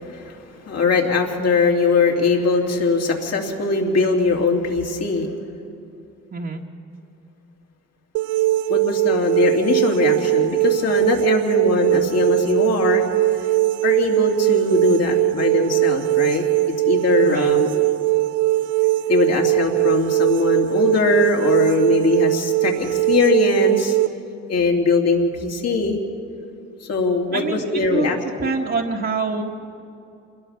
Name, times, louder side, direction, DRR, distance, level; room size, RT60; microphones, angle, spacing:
voice 1, 0.6-5.3 8.7-13.0 13.8-16.4 16.8-17.8 19.1-24.0 24.5-26.0 26.9-28.2, left 4 dB, 55° left, 1 dB, 3.2 m, -21 dB
sound 1, 8.2-24.1, right 17 dB, 90° right, 0.5 m, -20 dB
voice 2, 27.3-29.4, right 4 dB, 40° right, -3 dB, 1.7 m, -26 dB
27.5 x 20.5 x 5.9 m, 2.6 s
cardioid pair, 90°, 30 cm